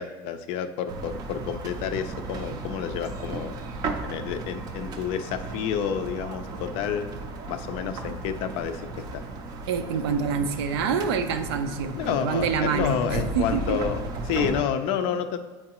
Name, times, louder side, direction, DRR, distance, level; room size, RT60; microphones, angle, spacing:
voice 1, 0.0-3.6 4.0-7.1 7.5-8.9 9.1-9.2 12.0-15.4, left 8 dB, 45° left, 9 dB, 0.4 m, -29 dB
sound 1, 0.9-14.6, right 3 dB, 30° right, 0.5 m, -35 dB
voice 2, 9.7-13.0 13.3-13.8, right 6 dB, 90° right, 8 dB, 0.6 m, -26 dB
8.4 x 4.5 x 2.9 m, 1.3 s
cardioid pair, 170°, 13 cm